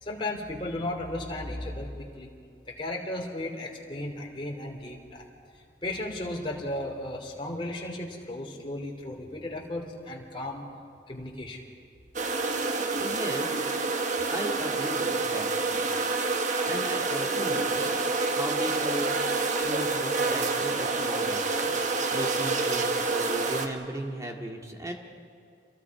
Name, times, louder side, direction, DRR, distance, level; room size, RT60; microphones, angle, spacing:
voice 1, 0.0-2.3 2.7-5.3 5.5-10.6 11.1-11.6, left 1 dB, 30° left, 0 dB, 3.2 m, -35 dB
sound 1, 12.1-23.7, right 3 dB, 45° right, 1.4 m, -28 dB
voice 2, 13.0-13.8 14.3-15.8 16.6-18.0 18.3-19.2 19.6-24.9, right 1 dB, 20° right, 2 dB, 2.1 m, -36 dB
29.5 x 23.5 x 4.9 m, 2.3 s
head